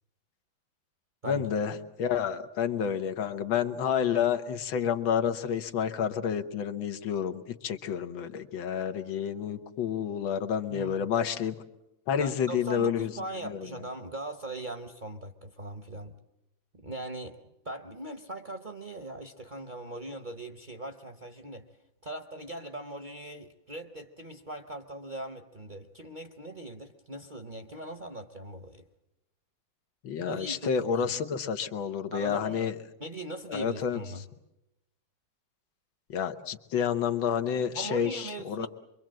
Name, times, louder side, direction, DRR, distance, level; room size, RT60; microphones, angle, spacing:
voice 1, 1.3-11.6 12.1-13.1 13.4-13.7 30.0-32.8 33.5-34.0 36.1-38.7, left 7 dB, 85° left, 8 dB, 1.9 m, -29 dB
voice 2, 10.7-11.1 12.2-16.1 16.7-17.4 17.6-21.6 22.0-28.8 30.2-31.1 32.1-32.7 33.0-34.2 37.7-38.7, right 1 dB, 35° right, 6 dB, 0.8 m, -40 dB
25.0 x 23.0 x 7.6 m, 0.91 s
omnidirectional pair, 2.1 m